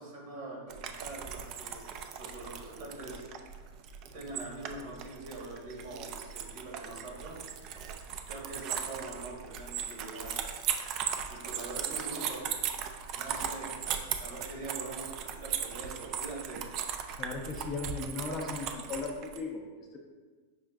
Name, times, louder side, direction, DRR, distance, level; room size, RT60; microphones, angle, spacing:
voice 1, 0.0-1.8 2.2-3.2 4.1-7.4 8.3-10.4 11.3-12.4 13.1-13.7 14.2-16.6, right 2 dB, 60° right, -2 dB, 1.2 m, -43 dB
sound 1, 0.7-19.4, right 8 dB, 40° right, 0.3 m, -38 dB
voice 2, 17.2-20.0, left 4 dB, 25° left, -1 dB, 0.4 m, -37 dB
5.5 x 2.4 x 2.3 m, 1.4 s
supercardioid pair, 140°, 0 cm